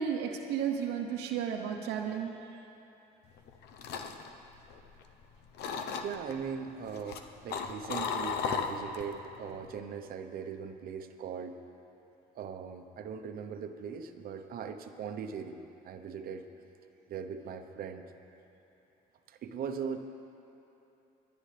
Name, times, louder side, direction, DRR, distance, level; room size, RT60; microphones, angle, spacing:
voice 1, 0.0-2.3, right 7 dB, 90° right, 3 dB, 0.9 m, -33 dB
sound 1, 3.4-5.2 5.6-6.3 6.9-9.1 9.5-9.8, left 6 dB, 75° left, 0.8 m, -35 dB
voice 2, 5.8-11.6 12.3-15.6 15.8-16.5 17.1-18.1 19.3-20.0, right 6 dB, 60° right, 7 dB, 0.9 m, -40 dB
22.0 x 10.5 x 3.4 m, 2.9 s
cardioid pair, 110°, 17 cm